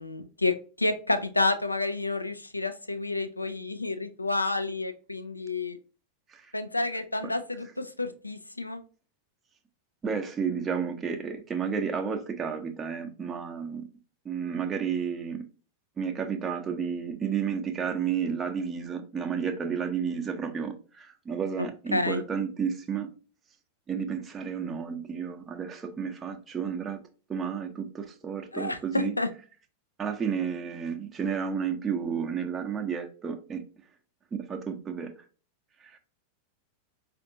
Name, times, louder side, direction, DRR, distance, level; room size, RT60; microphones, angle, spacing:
voice 1, 0.0-5.8 6.5-8.8 21.9-22.2 28.5-29.3, left 2 dB, 85° left, 0.5 m, -29 dB
voice 2, 10.0-13.9 14.2-15.5 16.0-23.1 23.9-27.0 27.3-29.1 30.0-33.6 34.3-35.1 35.8-36.0, right 6 dB, 20° right, 0.7 m, -31 dB
5.1 x 2.5 x 2.6 m
figure-of-eight pair, 90°, 0 cm